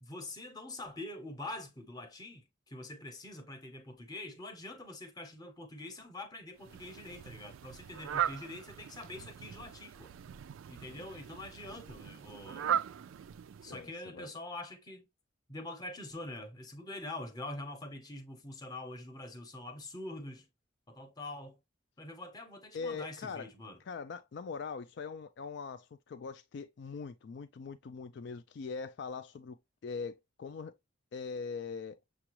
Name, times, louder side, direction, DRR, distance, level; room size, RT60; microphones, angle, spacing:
voice 1, 0.0-10.1 10.7-12.7 13.6-15.1 15.5-20.5 20.9-21.6 22.0-23.8, left 2 dB, 20° left, 0.7 m, -45 dB
Fowl, 6.6-14.0, right 9 dB, 80° right, 0.3 m, -39 dB
voice 2, 13.7-14.3 22.7-23.5 23.9-30.7 31.1-32.0, left 5 dB, 60° left, 0.3 m, -42 dB
6.8 x 2.3 x 2.9 m
head